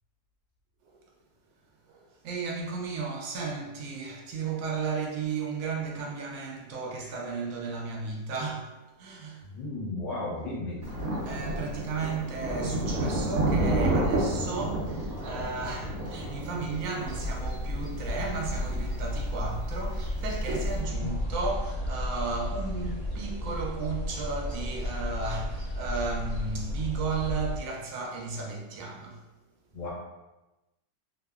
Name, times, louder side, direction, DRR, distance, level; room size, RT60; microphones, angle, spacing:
voice 1, 1.9-9.5 11.2-29.2, right 4 dB, 90° right, 1.3 m, -34 dB
voice 2, 9.4-10.8 21.0-21.3 29.7-29.9, left 2 dB, 70° left, 1.3 m, -34 dB
Thunder, 10.8-20.8, right 1 dB, 65° right, 0.9 m, -31 dB
sound 1, 17.0-27.6, left 1 dB, 40° left, 1.0 m, -33 dB
3.3 x 2.0 x 2.2 m
omnidirectional pair, 1.9 m